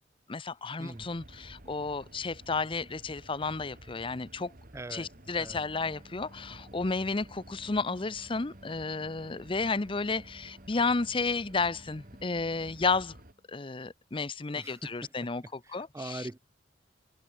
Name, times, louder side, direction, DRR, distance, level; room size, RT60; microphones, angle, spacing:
voice 1, 0.3-4.5 4.9-13.2 13.5-16.3, left 4 dB, 25° left, 0.7 m, -32 dB
sound 1, 0.9-13.3, right 1 dB, 45° right, 2.7 m, -52 dB
voice 2, 4.7-5.1 5.4-5.6 14.6-15.1 15.7-16.4, right 2 dB, 15° right, 0.4 m, -41 dB
sound 2, 5.4-13.6, right 1 dB, 30° right, 3.6 m, -57 dB
head